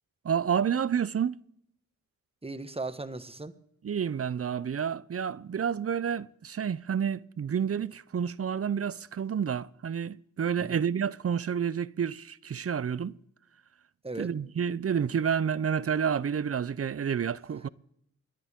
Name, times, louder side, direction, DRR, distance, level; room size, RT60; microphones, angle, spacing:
voice 1, 0.2-1.4 3.8-13.1 14.2-17.7, right 7 dB, 45° right, 0.6 m, -29 dB
voice 2, 2.4-3.5 10.6-10.8 14.0-14.3, right 2 dB, 15° right, 1.4 m, -37 dB
29.0 x 11.0 x 3.7 m
cardioid pair, 65°, 33 cm